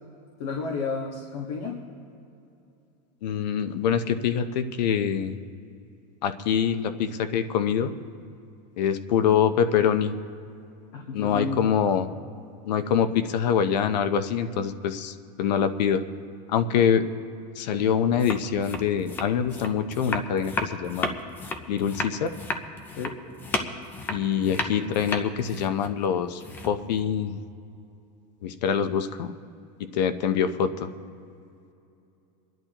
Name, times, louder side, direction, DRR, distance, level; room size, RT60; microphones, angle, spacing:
voice 1, 0.4-1.8 10.9-11.6 23.0-23.1, left 4 dB, 60° left, -1 dB, 1.5 m, -31 dB
voice 2, 3.2-5.4 6.2-7.9 8.8-10.1 11.1-12.1 12.7-16.0 16.5-17.1 17.6-21.1 21.7-22.3 24.1-27.4 28.4-29.3 29.9-30.9, left 8 dB, 80° left, 10 dB, 0.8 m, -25 dB
sound 1, 18.1-27.0, left 3 dB, 10° left, 0.4 m, -33 dB
29.0 x 10.5 x 3.0 m, 2.7 s
supercardioid pair, 180°, 21 cm